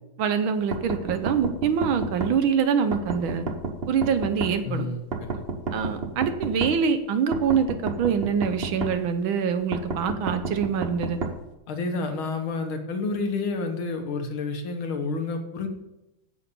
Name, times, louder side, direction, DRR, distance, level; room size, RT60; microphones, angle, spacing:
voice 1, 0.2-3.4 3.9-4.9 5.7-11.2, right 6 dB, 75° right, 9 dB, 1.7 m, -25 dB
sound 1, 0.7-2.3 2.9-4.5 5.1-6.7 7.3-8.9 9.7-11.3, right 4 dB, 40° right, 0.9 m, -30 dB
voice 2, 4.6-5.4 11.7-15.7, left 3 dB, 80° left, 4 dB, 2.2 m, -30 dB
8.3 x 8.1 x 6.9 m, 0.96 s
omnidirectional pair, 2.3 m